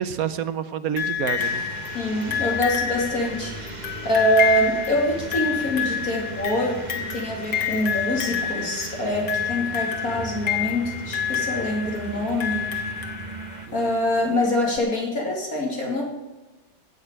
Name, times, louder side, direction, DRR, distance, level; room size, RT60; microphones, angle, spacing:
voice 1, 0.0-1.9 13.7-14.3, right 8 dB, 65° right, 12 dB, 1.1 m, -29 dB
sound 1, 1.0-13.8 14.8-14.9, left 9 dB, 85° left, 2.1 m, -29 dB
sound 2, 1.4-13.7, right 4 dB, 30° right, 1.1 m, -37 dB
voice 2, 1.9-12.7 13.7-16.0, equal, 55° left, -1 dB, 3.2 m, -25 dB
17.0 x 6.5 x 8.8 m, 1.2 s
omnidirectional pair, 1.8 m